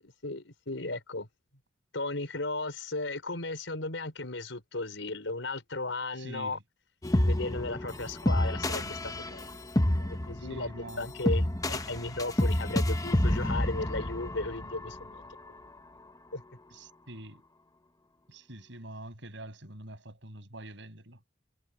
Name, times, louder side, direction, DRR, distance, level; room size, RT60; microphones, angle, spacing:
voice 1, 0.2-1.3 1.9-6.6 7.2-9.6 10.0-15.2 16.3-16.4, left 2 dB, 80° left, 4.7 m, -35 dB
voice 2, 6.1-6.6 10.4-11.1 16.7-17.4 18.3-21.2, right 1 dB, 70° right, 7.8 m, -45 dB
sound 1, 7.0-15.2, left 1 dB, 20° left, 1.0 m, -29 dB
head